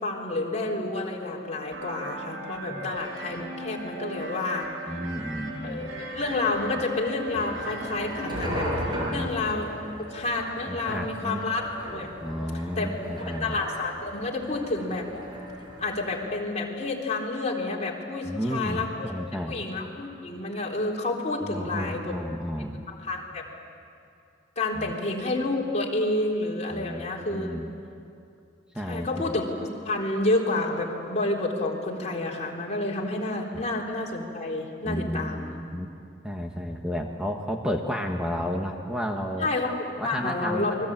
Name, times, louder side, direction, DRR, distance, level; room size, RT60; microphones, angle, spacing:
voice 1, 0.0-5.0 5.6-9.7 10.0-12.1 12.8-12.9 13.2-15.1 15.8-19.1 19.5-22.2 22.9-23.4 24.6-27.6 28.8-29.5 29.8-35.5 39.4-40.7, left 2 dB, 35° left, -1 dB, 3.8 m, -29 dB
sound 1, 1.7-8.4, right 2 dB, 80° right, 3.3 m, -38 dB
voice 2, 4.9-5.9 9.0-9.3 10.7-11.5 12.2-13.6 18.2-19.6 21.4-22.8 24.7-24.9 26.7-27.7 28.7-29.4 33.5-33.6 34.8-35.9 36.2-39.5 40.0-40.8, equal, 5° right, 1 dB, 1.4 m, -32 dB
sound 2, 6.2-16.2, equal, 25° right, 7.0 m, -36 dB
29.0 x 22.5 x 8.9 m, 2.5 s
head